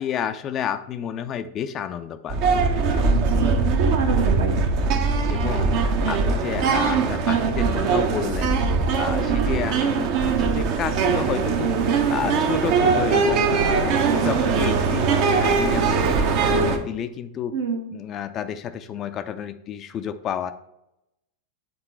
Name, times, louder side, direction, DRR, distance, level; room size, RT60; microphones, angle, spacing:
voice 1, 0.0-2.5 5.3-8.6 8.9-17.5 17.9-20.5, left 9 dB, 30° left, 10 dB, 0.4 m, -31 dB
sound 1, 2.3-16.8, right 4 dB, 45° right, 0.8 m, -21 dB
voice 2, 3.1-4.6 9.2-9.5 13.9-14.3 17.5-17.9, right 6 dB, 60° right, 3 dB, 1.2 m, -28 dB
7.8 x 3.8 x 4.3 m, 0.84 s
figure-of-eight pair, 90°, 0 cm